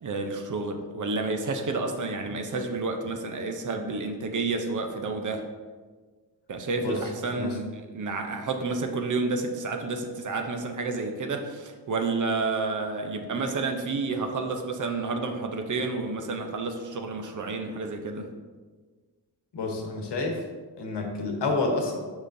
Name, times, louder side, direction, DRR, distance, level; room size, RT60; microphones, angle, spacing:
voice 1, 0.0-5.4 6.5-7.6 7.9-18.3, right 3 dB, 50° right, 5 dB, 0.6 m, -30 dB
voice 2, 19.5-20.4 20.8-22.0, left 3 dB, 85° left, 2 dB, 1.1 m, -29 dB
7.6 x 5.0 x 2.6 m, 1.4 s
wide cardioid pair, 165°, 40 cm